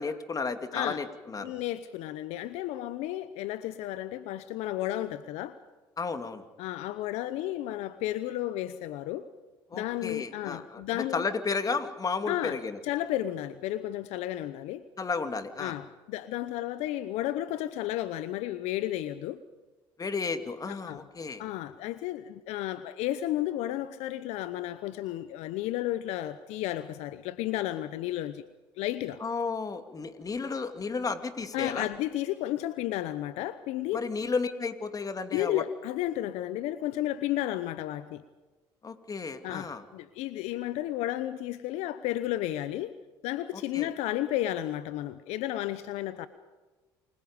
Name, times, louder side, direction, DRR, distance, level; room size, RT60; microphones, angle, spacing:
voice 1, 0.0-1.5 6.0-6.4 9.7-12.8 15.0-15.8 20.0-21.4 29.2-31.9 33.9-35.6 38.8-39.8 43.7-43.9, left 4 dB, 30° left, 9 dB, 2.6 m, -33 dB
voice 2, 1.4-5.6 6.6-9.3 9.7-11.2 12.3-12.6 12.8-14.8 15.6-19.4 20.7-21.0 21.4-28.4 28.8-29.2 31.5-34.1 35.3-38.2 39.4-43.0 43.2-46.3, left 14 dB, 75° left, 14 dB, 0.9 m, -33 dB
28.5 x 21.5 x 5.2 m, 1.2 s
hypercardioid pair, 70°, 11 cm